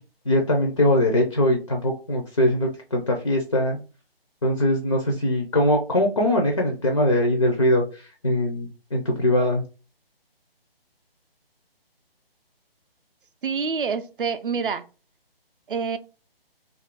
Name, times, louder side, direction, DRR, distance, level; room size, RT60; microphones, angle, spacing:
voice 1, 0.3-3.8 4.4-9.6, left 1 dB, 35° left, 0.4 m, -22 dB
voice 2, 13.4-14.8 15.7-16.0, right 5 dB, 60° right, 0.4 m, -27 dB
2.5 x 2.5 x 3.4 m
figure-of-eight pair, 145°, 30 cm